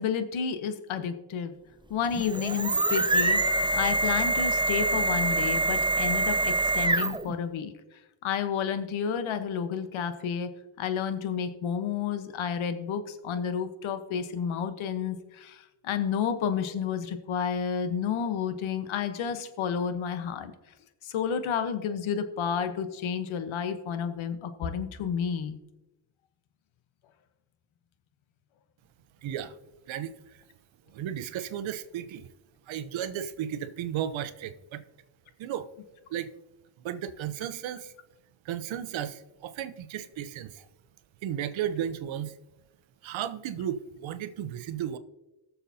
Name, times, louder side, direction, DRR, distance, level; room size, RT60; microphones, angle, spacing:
voice 1, 0.0-1.5 1.9-3.4 3.7-7.7 8.2-10.5 10.8-20.5 21.0-25.6, left 7 dB, 75° left, 9 dB, 1.2 m, -31 dB
sound 1, 2.0-7.3, right 2 dB, 10° right, 0.6 m, -25 dB
voice 2, 29.2-29.6 29.9-30.4 30.9-32.3 32.7-34.8 35.4-35.7 36.1-36.3 36.8-37.9 38.4-40.7 41.2-42.4 43.0-45.0, right 10 dB, 70° right, 12 dB, 0.9 m, -34 dB
19.0 x 7.0 x 2.8 m, 1.0 s
supercardioid pair, 60°, 48 cm